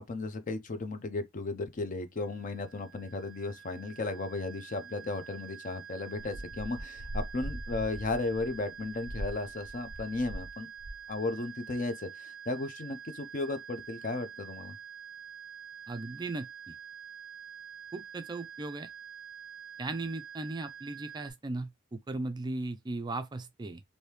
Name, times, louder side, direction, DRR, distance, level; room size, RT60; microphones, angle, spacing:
voice 1, 0.0-10.7 11.1-14.8, left 3 dB, 40° left, 0.5 m, -35 dB
sound 1, 2.2-21.3, right 8 dB, ahead, 1.1 m, -47 dB
sound 2, 6.2-10.5 10.8-11.2, equal, 65° left, 0.8 m, -41 dB
voice 2, 15.9-16.8 17.9-18.9 19.8-23.8, right 2 dB, 20° right, 0.4 m, -37 dB
3.0 x 2.7 x 3.2 m
head